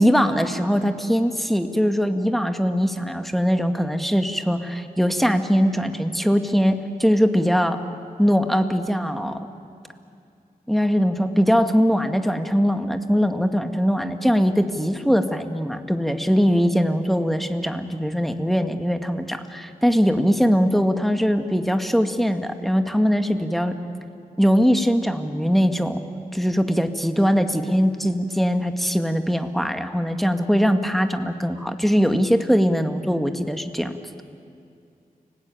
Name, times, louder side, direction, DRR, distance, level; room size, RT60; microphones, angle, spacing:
voice 1, 0.0-7.8 8.2-9.4 10.7-23.7 24.4-26.0 26.3-33.9, equal, ahead, 7 dB, 1.8 m, -21 dB
30.0 x 19.0 x 9.2 m, 2.5 s
cardioid pair, 55°, 15 cm